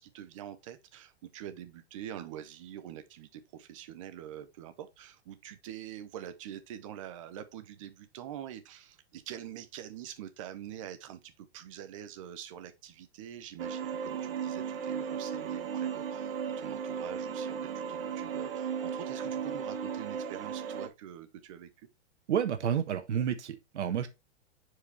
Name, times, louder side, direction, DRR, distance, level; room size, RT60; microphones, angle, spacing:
voice 1, 0.0-21.9, right 10 dB, 30° right, 0.8 m, -45 dB
sound 1, 13.6-20.9, right 7 dB, 55° right, 1.2 m, -36 dB
voice 2, 22.3-24.1, right 9 dB, 80° right, 1.4 m, -30 dB
7.0 x 4.9 x 3.3 m
hypercardioid pair, 170°, 34 cm